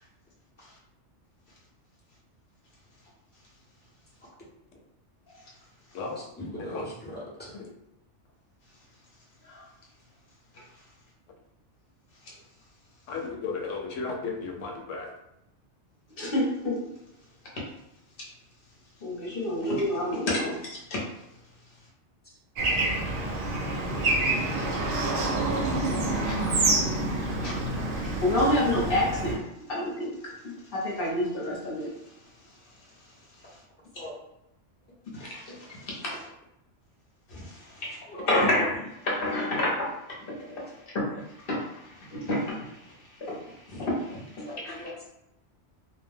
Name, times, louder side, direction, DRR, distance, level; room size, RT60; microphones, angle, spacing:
voice 1, 6.4-7.5 34.0-34.1 38.1-38.3 44.5-45.0, equal, 10° left, -8 dB, 0.7 m, -39 dB
voice 2, 13.1-15.1, left 4 dB, 85° left, 1 dB, 0.9 m, -34 dB
voice 3, 16.2-16.8 18.2-18.3 19.0-21.0 26.3-26.7 27.4-29.4 29.7-31.9 35.1-36.3 37.3-38.0 38.3-44.8, left 1 dB, 55° left, -3 dB, 0.9 m, -30 dB
Bird / Traffic noise roadway noise, 22.6-29.3, right 2 dB, 55° right, 0.6 m, -27 dB
2.4 x 2.2 x 3.2 m, 0.85 s
omnidirectional pair, 1.2 m